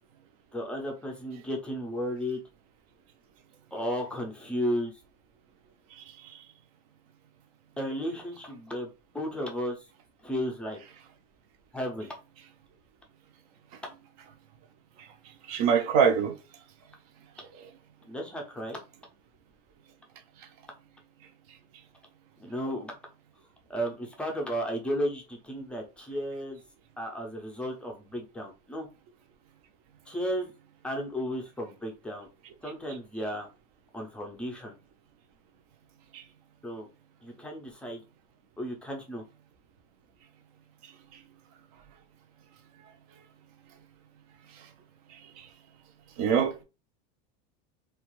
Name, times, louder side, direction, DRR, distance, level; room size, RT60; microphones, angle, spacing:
voice 1, 0.5-2.4 3.7-4.9 7.8-9.9 10.2-10.8 11.7-12.1 18.0-18.8 22.4-22.9 23.7-26.6 27.0-28.9 30.1-30.5 30.8-32.3 32.6-33.5 33.9-34.8 36.6-36.9 37.2-38.0 38.6-39.2, equal, 5° left, 0.4 m, -34 dB
voice 2, 15.5-16.4 36.1-36.2 45.4-45.5 46.2-46.6, right 7 dB, 60° right, 0.6 m, -24 dB
2.8 x 2.3 x 3.0 m
supercardioid pair, 160°, 21 cm